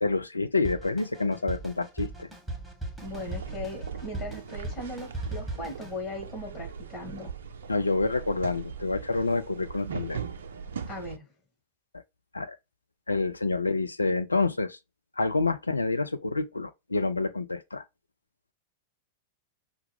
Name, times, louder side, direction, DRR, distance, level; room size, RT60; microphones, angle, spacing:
voice 1, 0.0-2.3 7.7-10.2 12.3-12.6 13.1-14.8 15.2-17.8, left 3 dB, 80° left, 0.5 m, -28 dB
Drum kit, 0.6-6.0, right 2 dB, ahead, 1.3 m, -38 dB
voice 2, 3.0-7.3 10.9-11.2, left 2 dB, 25° left, 2.9 m, -38 dB
sound 1, 3.0-11.2, right 6 dB, 65° right, 0.5 m, -39 dB
5.8 x 2.4 x 3.3 m
figure-of-eight pair, 95°, 0 cm